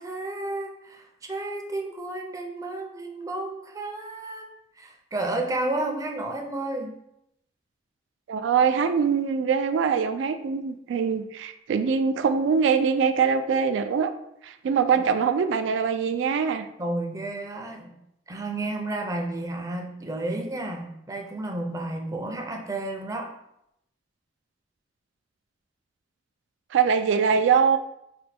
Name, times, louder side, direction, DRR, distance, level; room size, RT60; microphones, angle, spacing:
voice 1, 0.0-4.5 4.8-7.0 15.0-15.1 16.8-17.9 18.3-23.3, right 2 dB, 20° right, 2 dB, 0.5 m, -32 dB
voice 2, 8.3-14.1 14.4-16.7 26.7-27.8, right 6 dB, 75° right, 8 dB, 0.3 m, -23 dB
4.3 x 2.2 x 4.1 m, 0.80 s
head